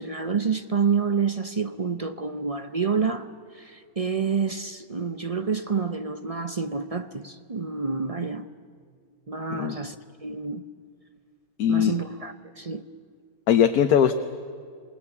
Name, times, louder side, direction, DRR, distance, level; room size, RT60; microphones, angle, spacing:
voice 1, 0.0-8.5 9.3-10.6 11.7-12.8, right 5 dB, 35° right, 0.6 m, -28 dB
voice 2, 11.6-11.9 13.5-14.2, left 9 dB, 80° left, 1.3 m, -20 dB
27.5 x 19.5 x 8.5 m
omnidirectional pair, 1.6 m